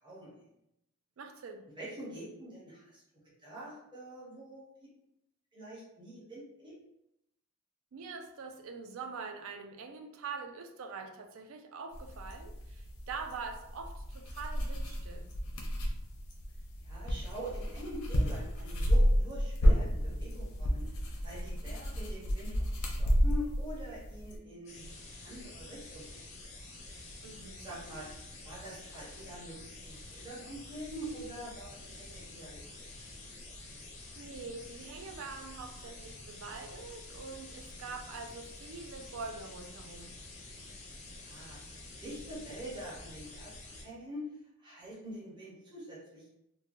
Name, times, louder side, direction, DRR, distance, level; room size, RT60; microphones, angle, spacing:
voice 1, 0.0-0.3 1.8-3.0 3.4-4.6 5.5-6.8 16.8-20.8 21.2-26.2 27.6-28.1 28.4-32.9 41.2-41.6 41.9-44.3 44.6-46.3, equal, 20° right, -7 dB, 0.7 m, -45 dB
voice 2, 1.2-1.6 7.9-15.3 27.2-27.6 34.2-40.1, right 4 dB, 65° right, 5 dB, 0.3 m, -44 dB
sound 1, 11.9-24.4, equal, 80° left, 0.6 m, -31 dB
sound 2, 24.7-43.8, left 2 dB, 30° left, 0.5 m, -48 dB
3.1 x 2.2 x 2.5 m, 0.83 s
head